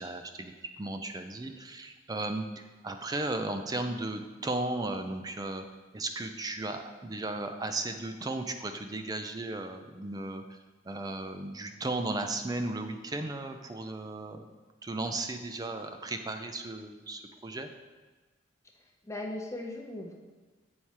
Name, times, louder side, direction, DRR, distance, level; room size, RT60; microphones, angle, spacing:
voice 1, 0.0-5.6 5.9-10.6 10.9-14.5 14.8-17.7, right 2 dB, 20° right, 6 dB, 0.4 m, -35 dB
voice 2, 18.8-20.2, left 1 dB, 15° left, 1 dB, 0.7 m, -39 dB
7.4 x 4.7 x 4.2 m, 1.3 s
head